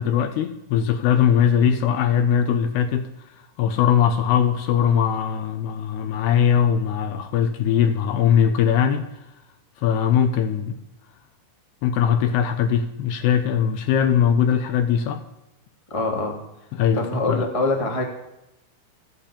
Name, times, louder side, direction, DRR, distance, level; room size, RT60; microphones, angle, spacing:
voice 1, 0.0-3.1 3.6-9.0 9.8-10.8 11.8-15.2 16.7-17.5, left 8 dB, 75° left, 8 dB, 2.8 m, -20 dB
voice 2, 15.9-16.4 16.9-18.0, left 2 dB, 15° left, 0 dB, 1.1 m, -24 dB
14.0 x 9.1 x 8.5 m, 0.89 s
omnidirectional pair, 5.1 m